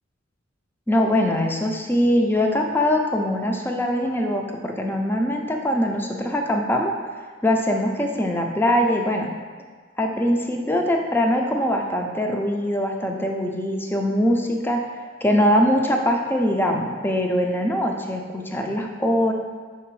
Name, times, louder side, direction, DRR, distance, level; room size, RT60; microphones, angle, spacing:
voice 1, 0.9-6.9 7.4-9.3 10.0-14.8 15.2-19.3, equal, 10° left, 2 dB, 0.5 m, -22 dB
5.8 x 3.5 x 4.7 m, 1.5 s
head